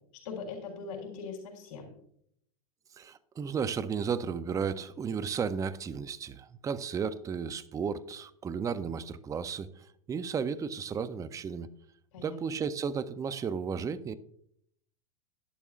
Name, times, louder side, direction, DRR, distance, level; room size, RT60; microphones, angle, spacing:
voice 1, 0.1-1.9 12.1-12.4, left 5 dB, 65° left, -1 dB, 3.5 m, -41 dB
voice 2, 3.0-11.7 12.2-14.1, right 6 dB, 15° right, 14 dB, 0.5 m, -34 dB
11.5 x 11.0 x 2.4 m, 0.70 s
hypercardioid pair, 120°, 19 cm